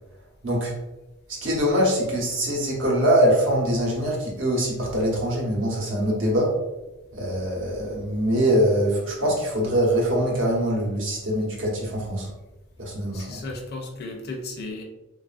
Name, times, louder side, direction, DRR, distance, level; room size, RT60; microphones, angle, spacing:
voice 1, 0.4-0.7 1.3-6.5 7.1-12.3 12.8-13.4, equal, 65° right, -2 dB, 0.9 m, -23 dB
voice 2, 13.1-14.8, left 2 dB, 50° left, 1 dB, 0.5 m, -35 dB
3.1 x 2.4 x 2.4 m, 0.98 s
head